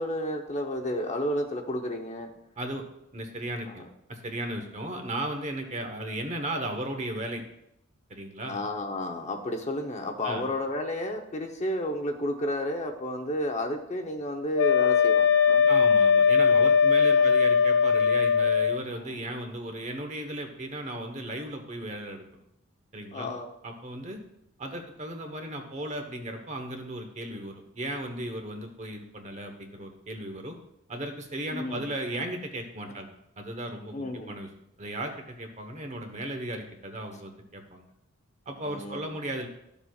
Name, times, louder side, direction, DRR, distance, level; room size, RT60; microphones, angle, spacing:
voice 1, 0.0-2.3 3.7-3.9 8.5-15.7 17.2-17.3 18.9-19.1 23.1-23.5 31.5-31.8 33.9-34.3 38.6-39.0, left 1 dB, 35° left, 3 dB, 0.8 m, -32 dB
voice 2, 3.1-7.4 8.1-8.6 10.2-10.5 15.7-22.2 22.9-23.3 23.6-24.2 24.6-30.6 30.9-33.1 33.4-34.5 34.8-37.9 38.5-39.5, right 1 dB, 35° right, 4 dB, 1.1 m, -36 dB
Wind instrument woodwind instrument, 14.5-18.8, left 6 dB, 60° left, 0.4 m, -20 dB
12.5 x 7.0 x 2.4 m, 0.80 s
head